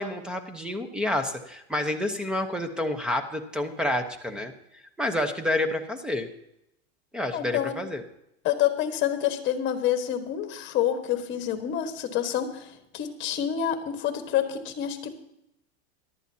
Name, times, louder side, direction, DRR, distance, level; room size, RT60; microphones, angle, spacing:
voice 1, 0.0-4.5 5.0-6.3 7.1-8.0, left 1 dB, 5° right, 7 dB, 0.9 m, -29 dB
voice 2, 7.3-7.8 8.4-15.3, left 10 dB, 35° left, 7 dB, 1.5 m, -28 dB
18.0 x 12.0 x 2.8 m, 0.82 s
supercardioid pair, 150°, 33 cm